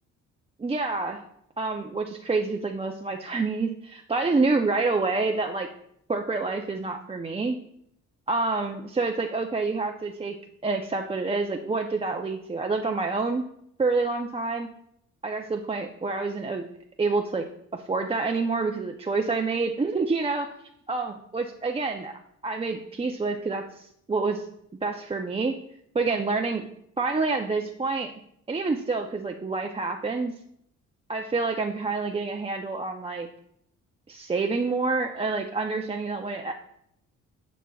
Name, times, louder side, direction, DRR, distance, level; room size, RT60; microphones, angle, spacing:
voice 1, 0.6-1.2 1.6-5.7 6.1-7.6 8.3-10.3 10.6-13.4 13.8-14.7 15.2-16.6 17.0-17.4 17.7-20.5 20.9-24.4 24.8-25.6 25.9-26.7 27.0-28.1 28.5-30.3 31.1-33.3 34.1-36.5, right 3 dB, 20° right, 2 dB, 0.6 m, -27 dB
11.0 x 6.1 x 2.3 m, 0.72 s
cardioid pair, 90°, 30 cm